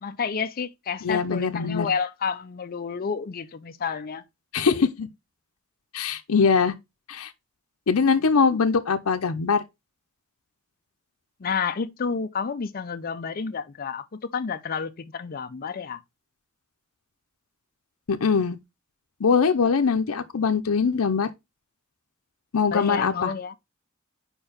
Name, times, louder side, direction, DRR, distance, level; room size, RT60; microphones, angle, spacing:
voice 1, 0.0-4.2 8.5-8.6 11.4-16.0 22.7-23.6, left 5 dB, 45° left, 0.5 m, -30 dB
voice 2, 1.0-1.9 4.5-5.1 5.9-6.7 7.1-7.3 7.9-9.6 18.1-18.6 19.2-21.3 22.5-23.3, left 5 dB, 90° left, 0.6 m, -22 dB
4.8 x 4.5 x 5.0 m
head